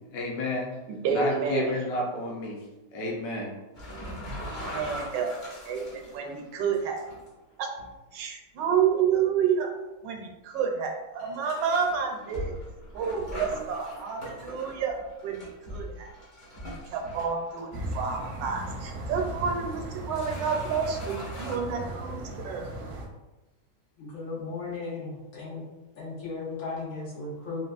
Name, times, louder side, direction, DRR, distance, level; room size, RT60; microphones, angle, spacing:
voice 1, 0.1-0.7 1.1-2.6 2.9-3.5, left 2 dB, 70° left, -2 dB, 1.1 m, -31 dB
voice 2, 1.0-1.7 4.4-7.0 7.6-7.7 8.1-9.7 10.0-12.5 12.9-15.0 15.2-16.1 16.6-22.8, right 6 dB, 90° right, 2 dB, 1.3 m, -29 dB
sound 1, 3.7-7.3 7.8-7.9 8.6-8.8 9.6-9.7 11.2-18.5 18.9-19.0 19.8-19.9 20.1-21.6, equal, 50° left, 0.6 m, -41 dB
sound 2, 17.7-23.1, right 1 dB, 70° right, 0.7 m, -37 dB
voice 3, 24.0-25.6 26.0-27.6, left 3 dB, 85° left, -7 dB, 1.8 m, -36 dB
3.8 x 2.3 x 2.4 m, 1.1 s
omnidirectional pair, 1.9 m